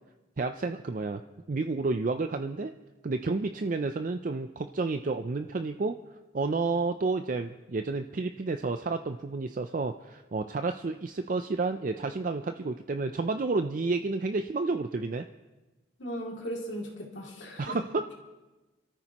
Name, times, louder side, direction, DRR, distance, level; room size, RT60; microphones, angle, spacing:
voice 1, 0.4-1.2 1.5-2.7 3.0-6.0 6.3-15.2 17.6-18.1, right 3 dB, 40° right, 7 dB, 0.4 m, -30 dB
voice 2, 16.0-17.8, equal, 65° left, -2 dB, 2.6 m, -37 dB
28.0 x 13.5 x 3.0 m, 1.1 s
head